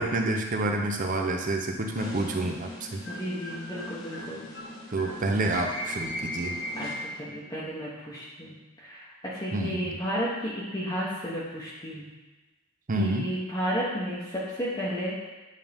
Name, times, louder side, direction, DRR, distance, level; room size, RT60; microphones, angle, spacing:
voice 1, 0.0-3.0 4.9-6.5 9.5-10.0 12.9-13.3, right 2 dB, 40° right, 3 dB, 0.6 m, -28 dB
sound 1, 2.0-7.4, left 1 dB, 70° left, 1.6 m, -38 dB
voice 2, 3.1-4.5 6.8-12.1 12.9-15.1, equal, 20° left, -8 dB, 1.0 m, -33 dB
9.3 x 3.6 x 3.5 m, 1.2 s
head